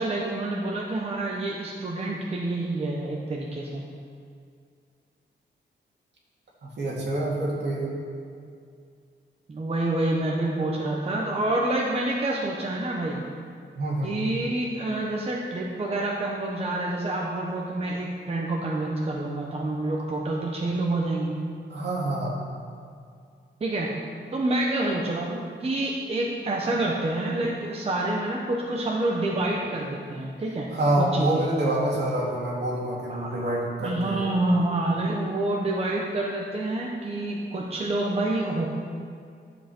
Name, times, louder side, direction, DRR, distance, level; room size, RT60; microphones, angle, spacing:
voice 1, 0.0-3.8 9.5-13.2 14.0-21.3 23.6-23.9 24.3-30.7 31.0-31.4 33.1-33.4 33.8-38.7, right 2 dB, 30° right, -2 dB, 0.9 m, -27 dB
voice 2, 6.6-7.9 13.8-14.2 21.7-22.4 30.7-34.3, right 1 dB, 65° right, -4 dB, 2.4 m, -26 dB
13.0 x 7.5 x 4.4 m, 2.3 s
wide cardioid pair, 170°, 19 cm